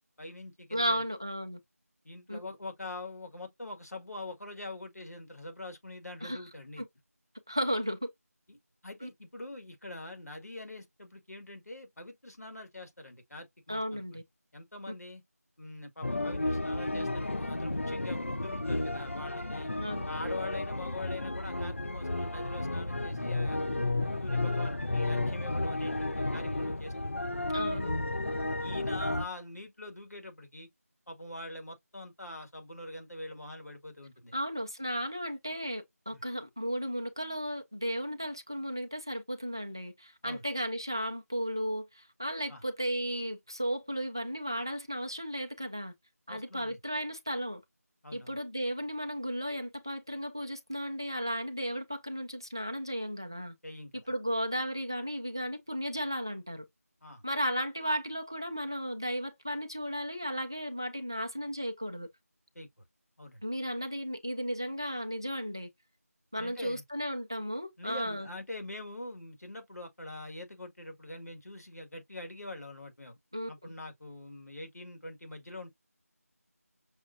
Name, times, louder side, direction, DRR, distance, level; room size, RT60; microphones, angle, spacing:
voice 1, 0.2-1.0 2.0-6.8 8.5-8.6 8.8-14.2 14.5-15.2 15.6-19.7 20.1-23.8 24.2-27.2 28.6-30.7 31.1-34.3 36.1-36.2 40.2-40.4 42.5-42.6 46.3-46.8 48.0-48.4 53.6-54.0 57.0-57.2 62.6-62.7 63.2-63.4 66.4-66.8 67.8-73.2 73.5-75.7, left 2 dB, 75° left, 1.8 m, -44 dB
voice 2, 0.7-1.6 2.3-2.4 6.2-6.4 6.8-6.9 7.5-8.0 9.0-9.1 13.7-14.2 19.8-20.1 27.5-27.9 34.3-45.9 46.3-47.6 48.1-53.6 54.1-56.6 57.2-62.1 63.4-65.7 66.3-68.3 73.3-73.7, equal, 15° right, 0.4 m, -34 dB
sound 1, 16.0-29.2, left 2 dB, 50° left, 0.6 m, -32 dB
6.2 x 2.2 x 2.6 m
figure-of-eight pair, 175°, 9 cm